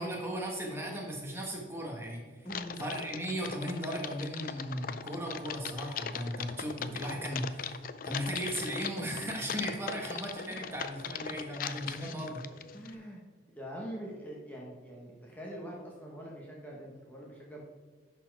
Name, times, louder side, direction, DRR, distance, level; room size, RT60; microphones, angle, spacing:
voice 1, 0.0-2.2 2.8-12.4, equal, 15° right, -1 dB, 1.4 m, -37 dB
voice 2, 2.4-2.8 10.5-10.7 11.8-12.2 12.7-13.2 13.6-17.6, equal, 10° left, -3 dB, 1.2 m, -44 dB
Typing, 2.5-12.9, left 7 dB, 50° left, 0.4 m, -40 dB
11.5 x 4.4 x 4.7 m, 1.4 s
head